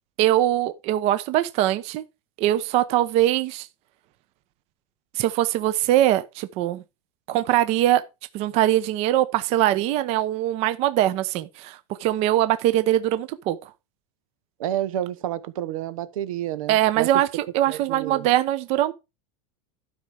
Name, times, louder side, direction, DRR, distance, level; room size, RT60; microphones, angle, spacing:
voice 1, 0.2-2.0 2.4-3.7 5.2-6.8 7.3-8.0 8.3-13.7 16.7-18.9, right 13 dB, 35° right, 0.8 m, -22 dB
voice 2, 14.6-17.1 17.7-18.3, right 12 dB, 75° right, 1.0 m, -30 dB
12.5 x 5.6 x 5.0 m
supercardioid pair, 160°, 18 cm